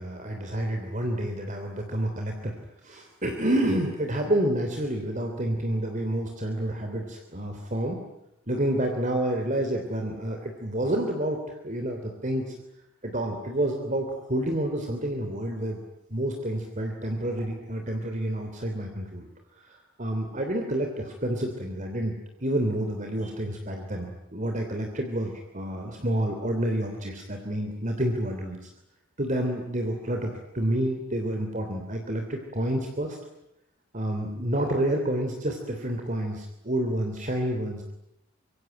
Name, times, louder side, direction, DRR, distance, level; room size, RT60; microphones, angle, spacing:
voice 1, 0.0-2.5 2.8-8.0 8.5-12.5 13.0-15.8 16.1-19.3 19.6-22.1 22.4-28.7 29.2-33.2 33.9-37.9, right 1 dB, 35° right, 3 dB, 3.2 m, -29 dB
25.5 x 24.5 x 9.2 m, 0.83 s
head